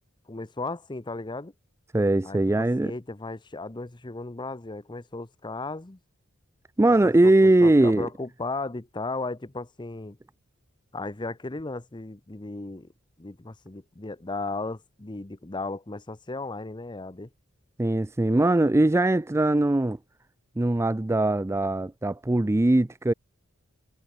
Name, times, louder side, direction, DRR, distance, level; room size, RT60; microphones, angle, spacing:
voice 1, 0.3-1.5 2.2-6.0 6.9-10.2 10.9-12.9 13.2-17.3, left 3 dB, 20° left, 0.8 m, -35 dB
voice 2, 1.9-2.9 6.8-8.1 17.8-20.0 20.6-23.1, right 2 dB, 15° right, 0.4 m, -21 dB
head